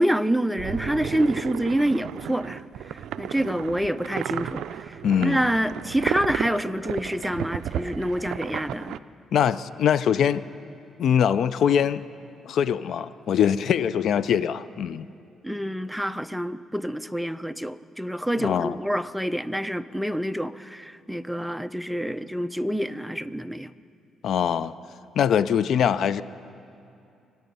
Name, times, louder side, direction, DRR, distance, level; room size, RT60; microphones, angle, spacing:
voice 1, 0.0-2.6 2.9-9.0 15.4-23.7, equal, ahead, 12 dB, 0.4 m, -27 dB
sound 1, 0.6-9.0, right 10 dB, 75° right, 0.3 m, -33 dB
voice 2, 5.0-5.4 9.3-10.4 11.0-12.0 12.4-15.1 18.4-18.8 24.2-24.7 25.2-26.2, left 8 dB, 70° left, 16 dB, 0.3 m, -22 dB
24.0 x 9.2 x 5.4 m, 2.6 s
cardioid pair, 90°, 0 cm